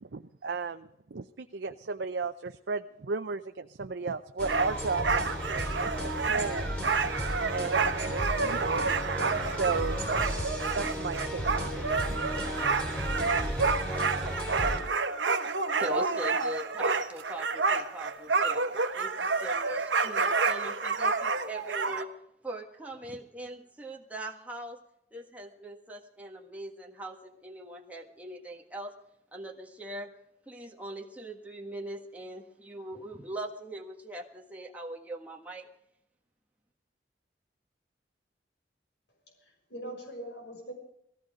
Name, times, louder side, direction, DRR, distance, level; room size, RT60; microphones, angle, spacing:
voice 1, 0.0-5.9 6.2-6.8 7.5-10.0 10.7-12.2, right 4 dB, 75° right, 8 dB, 0.6 m, -35 dB
sound 1, 4.4-14.8, equal, 5° left, 3.3 m, -34 dB
sound 2, 4.5-22.0, right 4 dB, 90° right, 1.1 m, -29 dB
voice 2, 15.8-18.6 18.9-22.1 22.4-24.8 25.1-28.9 29.3-30.1 30.5-35.7, right 1 dB, 10° right, -1 dB, 1.5 m, -41 dB
voice 3, 39.3-40.7, right 1 dB, 75° left, 2 dB, 6.1 m, -42 dB
18.0 x 15.0 x 5.1 m, 0.77 s
head